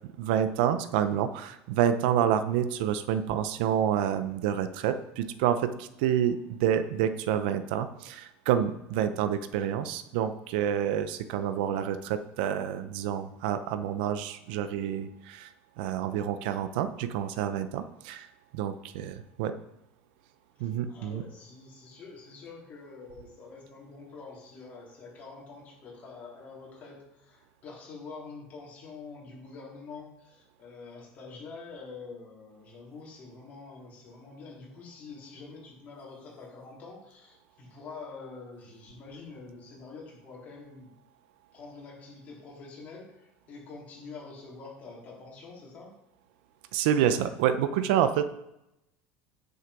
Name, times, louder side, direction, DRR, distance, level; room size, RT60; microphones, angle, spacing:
voice 1, 0.2-15.5 15.8-18.3 18.5-19.5 20.6-21.2 46.7-48.3, right 9 dB, 80° right, 11 dB, 0.8 m, -28 dB
voice 2, 20.9-40.9 41.5-45.9, left 4 dB, 30° left, -4 dB, 4.2 m, -46 dB
9.7 x 8.1 x 5.4 m, 0.85 s
cardioid pair, 175°, 5 cm